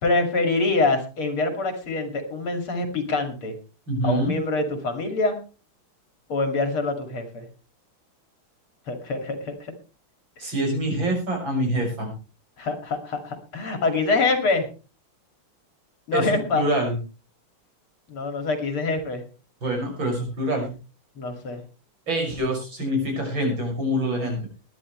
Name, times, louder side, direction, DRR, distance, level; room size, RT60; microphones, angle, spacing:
voice 1, 0.0-3.6 4.0-5.4 6.3-7.5 8.9-9.7 12.6-14.7 16.1-16.6 18.1-19.2 21.2-21.6, left 3 dB, 80° left, 7 dB, 3.2 m, -25 dB
voice 2, 3.9-4.3 10.4-12.1 16.1-17.0 19.6-20.7 22.1-24.4, right 1 dB, 60° right, 1 dB, 6.8 m, -25 dB
21.5 x 10.5 x 3.2 m, 0.33 s
omnidirectional pair, 2.3 m